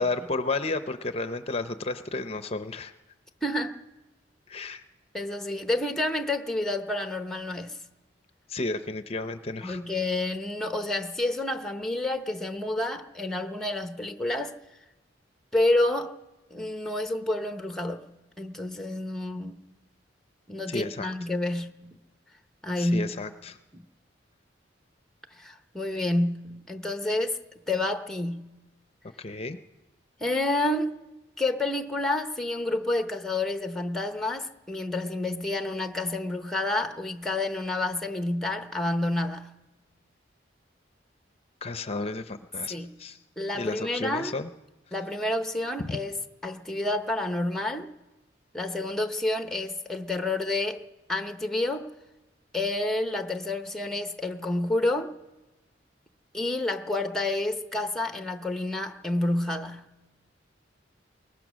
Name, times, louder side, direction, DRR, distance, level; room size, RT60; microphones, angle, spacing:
voice 1, 0.0-2.9 4.5-4.8 8.5-9.8 20.7-21.1 22.8-23.6 29.2-29.6 41.6-43.2 43.5-44.5 45.8-46.0, left 3 dB, 35° left, 0.6 m, -32 dB
voice 2, 3.4-3.8 5.1-7.8 9.6-14.5 15.5-16.1 16.5-18.1 18.4-19.7 20.5-22.0 22.6-23.1 23.7-23.8 25.4-27.4 27.7-28.6 30.2-31.0 31.4-39.6 42.7-43.0 43.4-44.3 44.9-46.2 46.4-47.9 48.5-50.8 51.1-51.9 52.5-55.1 56.3-59.9, left 2 dB, ahead, 0.8 m, -29 dB
21.5 x 19.5 x 6.2 m
head